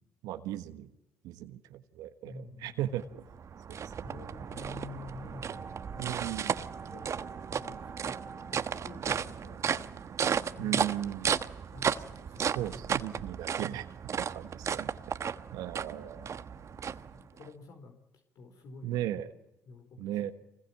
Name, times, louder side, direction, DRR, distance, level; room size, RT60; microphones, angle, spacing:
voice 1, 0.2-0.9 1.2-3.2 3.7-3.9 6.0-6.5 10.6-11.3 12.4-14.9 15.5-16.3 18.8-19.3 20.0-20.3, right 12 dB, 75° right, 8 dB, 1.3 m, -37 dB
voice 2, 2.2-3.1 4.0-5.6 5.9-6.4 6.9-7.1 7.5-8.2 8.5-10.0 10.5-11.0 11.7-13.0 14.7-15.2 16.5-18.0 18.3-19.2 19.7-20.3, left 2 dB, 65° left, 5 dB, 4.5 m, -49 dB
sound 1, 3.0-17.5, right 7 dB, 50° right, 1.2 m, -34 dB
sound 2, 5.5-9.6 9.8-9.9, right 2 dB, 10° right, 3.3 m, -50 dB
25.0 x 21.0 x 9.0 m, 0.93 s
hypercardioid pair, 60°, 7 cm